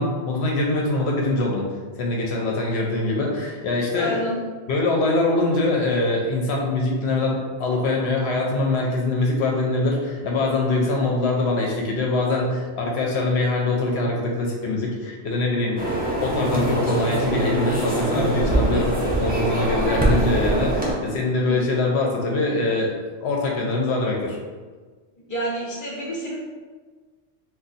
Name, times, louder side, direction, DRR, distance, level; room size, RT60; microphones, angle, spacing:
voice 1, 0.0-1.6 2.0-4.1 4.7-15.9 16.2-22.9 23.2-24.4, left 2 dB, 75° left, -1 dB, 0.8 m, -23 dB
voice 2, 3.9-4.4 21.4-21.6 25.3-26.4, equal, 20° left, -5 dB, 0.6 m, -29 dB
sound 1, 15.8-20.9, right 1 dB, 15° right, 0.3 m, -23 dB
2.5 x 2.2 x 3.9 m, 1.4 s
omnidirectional pair, 1.1 m